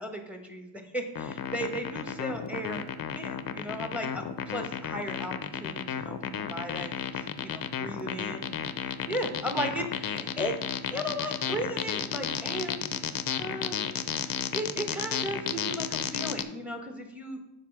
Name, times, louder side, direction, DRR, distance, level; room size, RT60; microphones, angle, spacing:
voice 1, 0.0-2.8 3.2-10.5 10.8-12.8 13.3-13.8 14.2-17.4, equal, 5° right, 4 dB, 1.2 m, -36 dB
sound 1, 1.2-16.4, left 8 dB, 45° left, 0.5 m, -33 dB
6.0 x 4.9 x 5.9 m, 0.93 s
cardioid pair, 90°, 49 cm